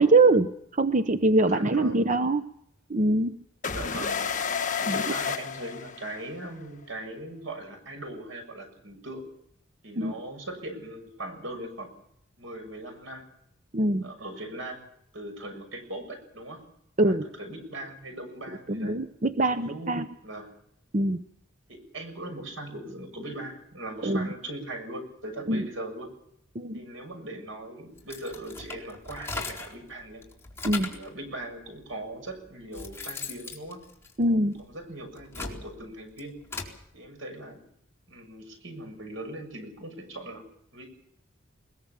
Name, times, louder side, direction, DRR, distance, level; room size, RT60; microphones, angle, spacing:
voice 1, 0.0-2.4 2.9-3.3 4.9-5.0 10.0-10.1 13.7-14.1 17.0-17.3 18.7-20.1 20.9-21.2 24.0-24.3 25.5-25.7 26.5-26.8 30.6-30.9 34.2-34.6, right 2 dB, 40° right, 10 dB, 0.8 m, -23 dB
voice 2, 1.4-2.1 3.7-4.3 4.8-9.2 9.8-11.9 12.4-13.2 14.0-14.9 15.1-16.7 17.0-19.0 19.5-20.5 21.7-26.1 26.7-30.2 30.8-33.8 34.4-36.3 36.9-37.6 38.1-40.4 40.7-40.9, right 1 dB, 75° right, 6 dB, 6.8 m, -40 dB
sound 1, 3.6-6.4, left 6 dB, 40° left, 1.5 m, -30 dB
sound 2, 28.0-29.8 30.2-31.1 31.9-32.0 32.5-34.6 35.1-36.8, left 3 dB, 15° left, 4.2 m, -38 dB
21.5 x 21.5 x 7.2 m, 0.74 s
head